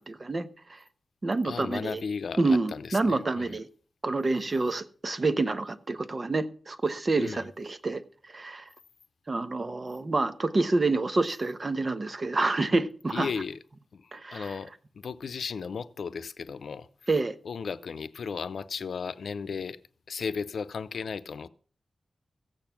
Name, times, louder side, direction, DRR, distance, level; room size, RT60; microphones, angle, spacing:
voice 1, 0.1-0.8 1.2-2.0 2.4-3.7 4.0-8.6 9.3-13.3 14.1-14.5 17.1-17.3, right 3 dB, 35° right, 1.0 m, -28 dB
voice 2, 1.4-3.6 7.2-7.5 13.1-13.6 13.9-14.7 15.0-16.9 17.4-19.8 20.1-21.5, left 5 dB, 90° left, 0.6 m, -35 dB
15.0 x 8.9 x 5.9 m
wide cardioid pair, 125°, 0 cm